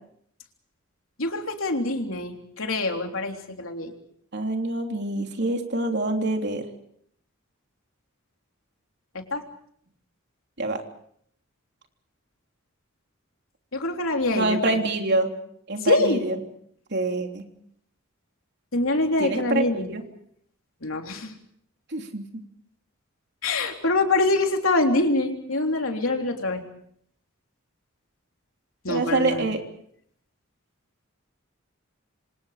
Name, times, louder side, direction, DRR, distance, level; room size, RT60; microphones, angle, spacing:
voice 1, 1.2-3.9 9.1-9.4 13.7-14.6 15.8-16.2 18.7-19.9 20.8-21.3 23.4-26.6 28.8-29.5, left 2 dB, 70° left, 3 dB, 3.6 m, -25 dB
voice 2, 4.3-6.7 10.6-10.8 14.3-15.3 15.7-16.4 16.9-17.4 19.2-20.0 21.9-22.2 28.9-29.6, right 2 dB, 55° right, 3 dB, 3.4 m, -26 dB
27.0 x 26.5 x 5.1 m, 0.68 s
head